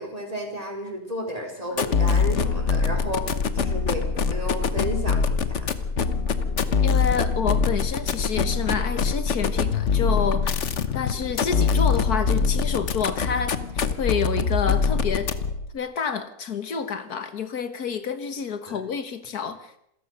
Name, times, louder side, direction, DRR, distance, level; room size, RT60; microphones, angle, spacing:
voice 1, 0.0-5.7 11.0-11.2 18.7-18.8, equal, 20° right, 4.8 m, -33 dB
sound 1, 1.7-15.7, left 5 dB, 50° left, 1.4 m, -24 dB
voice 2, 6.8-10.6 10.9-15.3 15.7-19.8, left 6 dB, 75° left, 1.8 m, -28 dB
27.5 x 14.0 x 6.6 m
omnidirectional pair, 1.7 m